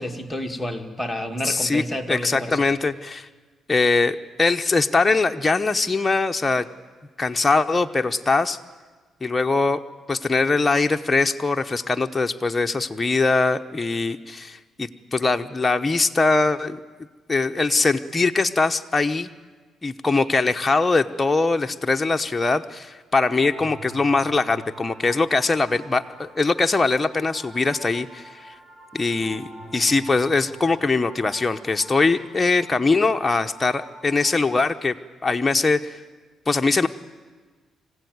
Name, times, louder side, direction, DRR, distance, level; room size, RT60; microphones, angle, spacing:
voice 1, 0.0-2.7, equal, 5° left, 2 dB, 2.3 m, -30 dB
voice 2, 1.4-1.8 2.1-3.3 3.7-6.7 7.2-8.6 9.2-9.8 10.1-16.8 17.3-19.3 19.8-28.5 28.9-35.0 35.2-36.0 36.5-36.9, left 3 dB, 20° left, 5 dB, 0.9 m, -22 dB
sound 1, 23.3-34.7, right 1 dB, 25° right, 3.7 m, -45 dB
25.0 x 16.0 x 9.5 m, 1.4 s
cardioid pair, 90°, 0 cm